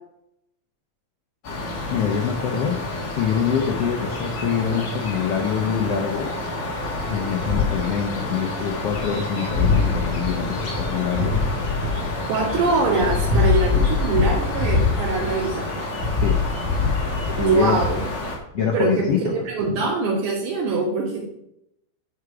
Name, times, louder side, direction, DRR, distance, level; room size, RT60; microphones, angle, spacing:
sound 1, 1.4-18.4, left 3 dB, 40° left, 2.0 m, -25 dB
voice 1, 1.9-2.8 3.1-6.3 7.0-11.3 16.2-16.4 16.8-17.0 17.4-17.8 18.5-19.3 19.7-19.9, left 7 dB, 75° left, 2 dB, 1.3 m, -25 dB
voice 2, 12.3-15.7 17.4-18.0 18.6-19.0 19.3-21.3, right 3 dB, 70° right, -6 dB, 3.8 m, -23 dB
9.7 x 5.8 x 4.8 m, 0.78 s
omnidirectional pair, 3.8 m